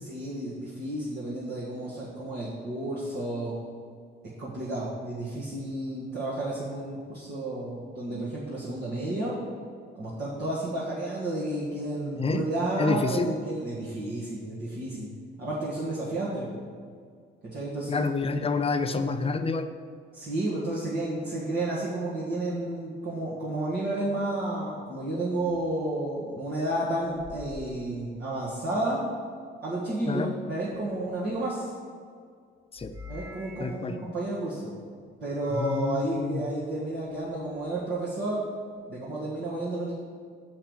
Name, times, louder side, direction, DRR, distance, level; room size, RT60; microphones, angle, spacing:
voice 1, 0.1-3.5 4.4-9.4 10.0-15.1 15.4-16.6 17.4-18.1 20.1-29.0 29.6-31.7 33.1-34.7 35.2-38.4 38.9-39.9, right 1 dB, 55° right, -7 dB, 1.9 m, -31 dB
voice 2, 12.8-13.3 17.9-19.7 30.1-30.3 32.7-32.9 33.6-34.0 35.5-36.5, left 4 dB, 30° left, 7 dB, 0.6 m, -28 dB
sound 1, 25.4-25.6 27.0-28.7 30.6-31.7 32.8-33.9 35.4-36.0 37.0-37.8, left 2 dB, 5° right, 1.5 m, -48 dB
6.4 x 5.7 x 7.1 m, 2.1 s
cardioid pair, 90°, 20 cm